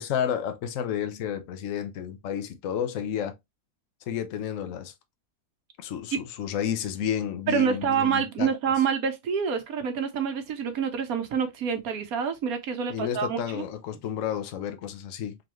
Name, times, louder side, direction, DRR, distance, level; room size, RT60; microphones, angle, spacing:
voice 1, 0.0-3.4 4.1-4.9 5.8-8.5 12.9-15.4, left 9 dB, 65° left, 1.0 m, -31 dB
voice 2, 7.5-13.6, right 7 dB, 70° right, 1.3 m, -27 dB
3.9 x 3.0 x 3.0 m
omnidirectional pair, 1.6 m